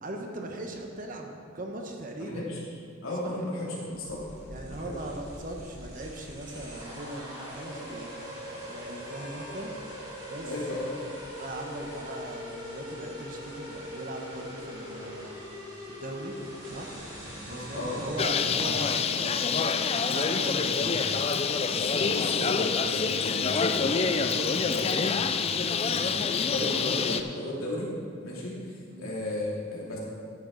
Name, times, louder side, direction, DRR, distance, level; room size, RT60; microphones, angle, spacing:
voice 1, 0.0-2.5 3.2-3.4 4.5-8.4 8.7-9.7 10.3-10.5 11.4-15.4 15.9-16.4 16.7-17.0 17.5-19.4 19.7-20.8 28.9-29.1, right 1 dB, 40° right, 2 dB, 1.1 m, -39 dB
voice 2, 2.2-2.6 3.0-4.2 4.7-4.9 10.4-10.9 17.4-18.0 18.4-18.7 20.6-21.2 21.7-27.9 28.2-30.0, left 1 dB, 80° left, -5 dB, 2.9 m, -35 dB
sound 1, 3.9-18.2, equal, 20° right, 3.1 m, -41 dB
Bird, 18.2-27.2, left 5 dB, 30° left, 0.4 m, -27 dB
12.5 x 9.5 x 4.0 m, 2.3 s
head